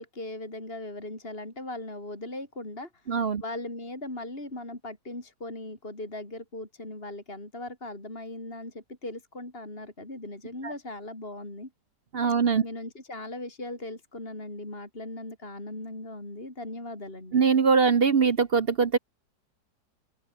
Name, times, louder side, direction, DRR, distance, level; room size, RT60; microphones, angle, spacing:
voice 1, 0.0-11.7 12.6-17.4, left 2 dB, 30° left, 5.3 m, -39 dB
voice 2, 3.1-3.4 12.1-12.6 17.3-19.0, right 5 dB, 45° right, 0.9 m, -22 dB
open air
omnidirectional pair, 1.9 m